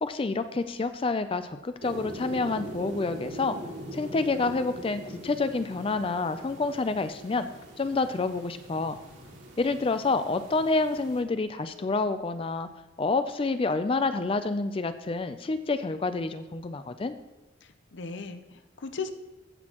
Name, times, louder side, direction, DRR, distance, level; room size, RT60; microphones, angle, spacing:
voice 1, 0.0-3.6 3.9-7.5 7.8-9.0 9.6-12.7 13.0-17.1, left 3 dB, 25° left, 10 dB, 0.4 m, -28 dB
sound 1, 1.8-11.2, equal, 60° right, 2.4 m, -42 dB
voice 2, 17.6-19.1, left 4 dB, 60° left, 10 dB, 0.7 m, -37 dB
14.5 x 6.3 x 2.9 m, 1.1 s
head